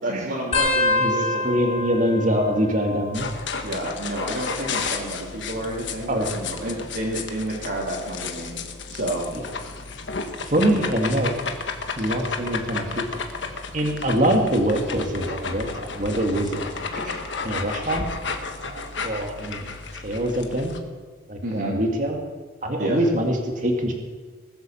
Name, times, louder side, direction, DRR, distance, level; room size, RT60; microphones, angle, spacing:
voice 1, 0.0-1.4 3.6-8.6 8.9-9.2 10.5-11.2 21.4-21.8 22.8-23.0, right 1 dB, 60° right, -6 dB, 2.9 m, -30 dB
sound 1, 0.5-3.7 4.0-4.6 5.6-7.1 7.7-8.0 9.2-9.6 11.1-11.2, left 2 dB, 35° left, 2.8 m, -28 dB
voice 2, 1.4-3.3 6.1-6.3 9.3-9.4 10.5-11.4 12.0-13.1 13.7-17.1 17.4-18.1 18.6-19.7 20.0-20.8 21.3-22.2 22.6-23.9, right 1 dB, 40° right, 2 dB, 1.9 m, -24 dB
sound 2, 3.1-20.8, left 4 dB, 70° left, 1.3 m, -33 dB
20.0 x 8.0 x 7.0 m, 1.4 s
head